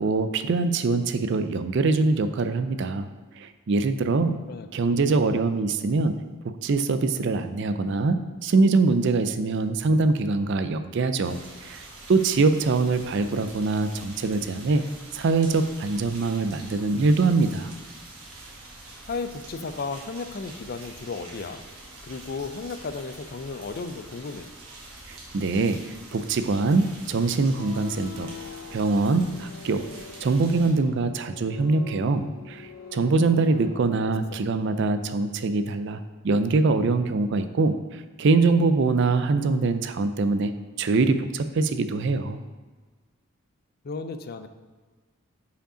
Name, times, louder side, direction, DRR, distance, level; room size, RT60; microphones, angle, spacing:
voice 1, 0.0-3.1 3.4-4.3 4.7-6.2 6.4-14.8 15.1-17.7 25.1-28.3 28.7-29.9 30.2-40.5 40.8-42.4, right 3 dB, 55° right, 10 dB, 0.4 m, -23 dB
voice 2, 4.9-5.4 19.1-21.6 22.0-24.5 43.8-44.5, left 4 dB, 45° left, 9 dB, 0.4 m, -34 dB
sound 1, 11.2-30.7, right 2 dB, 85° right, 1.5 m, -45 dB
sound 2, 27.4-34.4, left 5 dB, 70° left, 0.8 m, -44 dB
5.3 x 5.1 x 4.9 m, 1.4 s
head